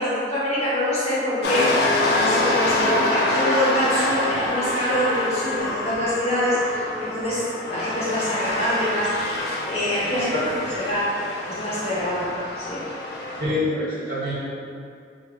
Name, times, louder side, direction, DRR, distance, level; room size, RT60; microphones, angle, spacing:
voice 1, 0.0-9.3 9.6-11.0 11.5-12.9, left 1 dB, 35° left, -9 dB, 0.8 m, -25 dB
sound 1, 1.4-13.4, left 1 dB, 70° left, 0.4 m, -26 dB
voice 2, 10.1-10.5 13.4-14.4, left 1 dB, 65° right, -10 dB, 1.2 m, -26 dB
3.0 x 2.3 x 3.2 m, 2.4 s
head